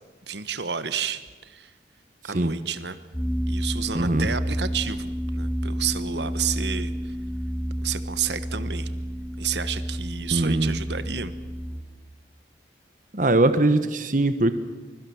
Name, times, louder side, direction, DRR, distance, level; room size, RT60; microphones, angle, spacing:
voice 1, 0.3-1.7 2.2-3.0 3.5-7.2 7.8-8.9 9.4-11.3, right 7 dB, 75° right, 13 dB, 1.3 m, -31 dB
voice 2, 2.2-2.6 3.9-4.3 10.3-10.8 13.1-14.5, right 2 dB, 45° right, 10 dB, 1.1 m, -21 dB
sound 1, 3.1-11.8, equal, 10° left, 3.3 m, -30 dB
24.5 x 23.0 x 7.2 m, 1.3 s
head